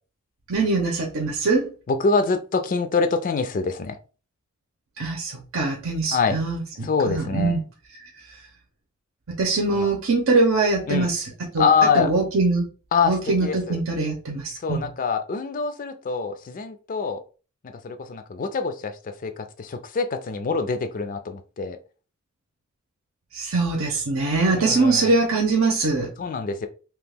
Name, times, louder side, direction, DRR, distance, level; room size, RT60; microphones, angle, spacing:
voice 1, 0.5-1.7 5.0-7.6 9.4-11.7 11.9-12.7 13.0-14.9 23.3-26.1, right 3 dB, 80° right, 0.7 m, -23 dB
voice 2, 1.9-4.0 6.1-6.4 6.8-7.6 9.7-9.9 10.9-11.1 11.6-12.1 12.9-13.8 14.6-17.2 17.8-21.8 24.5-25.1 26.2-26.7, left 5 dB, 40° left, 0.4 m, -25 dB
2.9 x 2.4 x 3.4 m
head